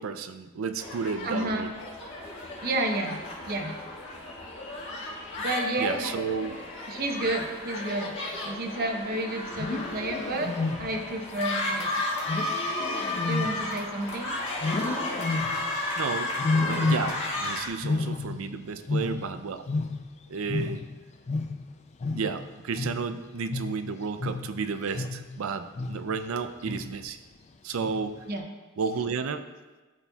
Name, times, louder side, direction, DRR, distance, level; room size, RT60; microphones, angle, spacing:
voice 1, 0.0-1.7 5.8-6.6 16.0-19.7 20.3-20.8 22.1-27.2 27.6-28.2 28.8-29.4, right 5 dB, 80° right, 10 dB, 0.4 m, -32 dB
sound 1, 0.8-17.7, left 2 dB, 60° left, 1.5 m, -33 dB
voice 2, 1.2-1.7 2.6-3.8 5.4-6.1 6.9-10.5 10.8-11.9 13.2-14.3 16.6-16.8 28.3-28.4, right 2 dB, 50° right, 3 dB, 0.8 m, -31 dB
Wild animals, 9.5-11.2 12.3-14.1 14.6-15.8 16.4-17.4 17.7-20.2 20.5-25.4 25.8-26.2 26.6-27.1 27.8-28.2, left 3 dB, 35° left, 0.4 m, -31 dB
12.0 x 4.2 x 2.3 m, 1.2 s
head